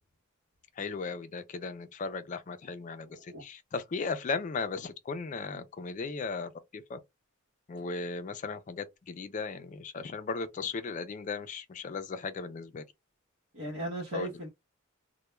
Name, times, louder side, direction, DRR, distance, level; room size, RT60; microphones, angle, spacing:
voice 1, 0.8-7.0 7.7-12.8 14.1-14.3, left 4 dB, 35° left, 0.3 m, -36 dB
voice 2, 3.1-3.4 13.5-14.5, equal, 75° right, 0.8 m, -37 dB
2.2 x 2.1 x 3.0 m
head